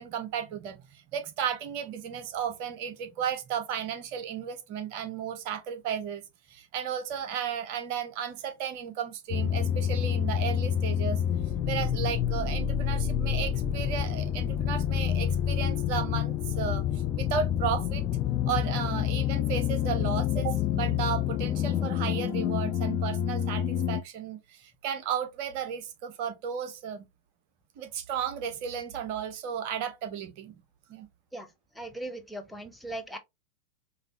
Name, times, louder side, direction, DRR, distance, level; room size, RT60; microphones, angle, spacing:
voice 1, 0.0-6.2 6.5-11.2 11.7-18.0 18.5-27.1 27.8-30.6 30.9-31.1, right 8 dB, 45° right, 0.9 m, -34 dB
sound 1, 9.3-24.0, left 9 dB, 35° left, 0.4 m, -28 dB
voice 2, 31.8-33.2, right 1 dB, ahead, 0.8 m, -38 dB
5.2 x 2.6 x 2.7 m
figure-of-eight pair, 90°, 0 cm